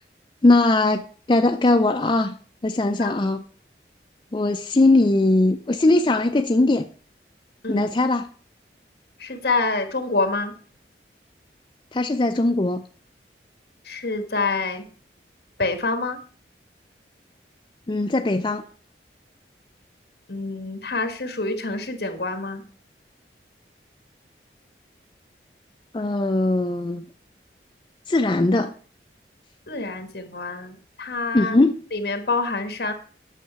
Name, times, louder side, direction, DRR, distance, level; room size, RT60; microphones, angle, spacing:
voice 1, 0.4-2.3 2.6-3.4 4.3-6.9 7.7-8.3 11.9-12.8 17.9-18.6 25.9-27.0 28.1-28.7 31.3-31.8, left 2 dB, 25° left, 5 dB, 0.4 m, -20 dB
voice 2, 9.2-10.5 13.8-14.8 15.6-16.2 20.3-22.6 29.7-31.5 31.9-32.9, left 3 dB, 65° left, 7 dB, 1.6 m, -26 dB
9.1 x 6.5 x 5.8 m, 0.42 s
head